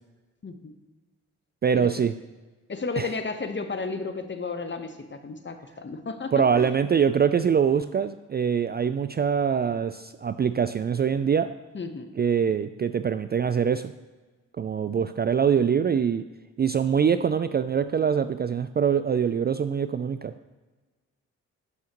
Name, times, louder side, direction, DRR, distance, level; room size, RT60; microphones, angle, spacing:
voice 1, 1.6-2.1 3.0-3.1 6.3-11.5 12.2-13.9 14.6-16.2 16.6-20.3, right 7 dB, 30° right, 11 dB, 0.4 m, -24 dB
voice 2, 2.7-6.7 11.7-12.1, left 4 dB, 30° left, 7 dB, 1.1 m, -33 dB
11.5 x 5.6 x 3.0 m, 1.2 s
hypercardioid pair, 40°, 36 cm